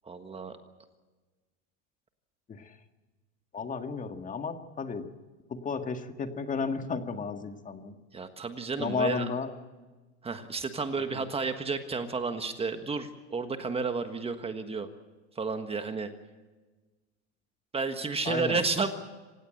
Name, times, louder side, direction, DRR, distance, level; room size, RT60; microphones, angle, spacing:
voice 1, 0.1-0.6 8.1-9.3 10.2-14.9 15.4-16.1 17.7-18.9, right 4 dB, 15° right, 8 dB, 1.4 m, -31 dB
voice 2, 3.5-5.1 5.5-8.0 8.8-9.5 11.1-11.3 18.2-18.6, left 4 dB, 25° left, 7 dB, 1.8 m, -33 dB
27.0 x 17.0 x 7.8 m, 1.3 s
supercardioid pair, 130°, 34 cm